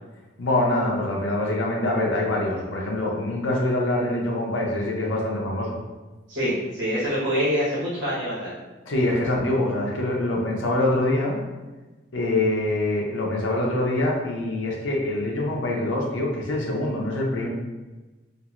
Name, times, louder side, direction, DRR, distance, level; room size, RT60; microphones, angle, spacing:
voice 1, 0.4-5.8 8.9-11.4 12.1-17.5, left 1 dB, 75° left, -1 dB, 0.6 m, -24 dB
voice 2, 6.3-8.5, equal, 60° right, -9 dB, 1.2 m, -25 dB
2.9 x 2.5 x 2.4 m, 1.2 s
head